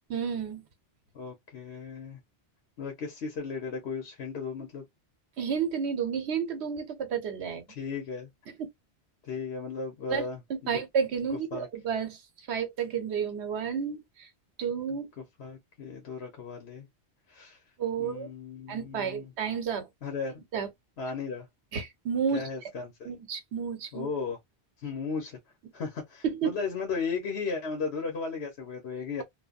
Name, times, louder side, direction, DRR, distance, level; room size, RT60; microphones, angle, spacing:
voice 1, 0.1-0.6 5.4-7.6 10.1-10.3 10.7-14.3 14.6-15.1 17.8-18.3 18.7-19.9 20.5-20.7 21.7-22.4 23.0-24.1 26.2-26.5, right 7 dB, 80° right, 1.0 m, -31 dB
voice 2, 1.1-2.2 2.8-4.8 7.7-8.3 9.2-10.4 10.7-10.8 11.3-11.7 14.9-15.0 15.4-16.9 17.3-17.6 18.0-19.3 20.0-20.4 21.0-21.5 22.3-23.1 23.9-24.4 24.8-25.4 25.7-29.2, left 5 dB, 75° left, 1.1 m, -35 dB
3.3 x 2.0 x 2.4 m
omnidirectional pair, 1.1 m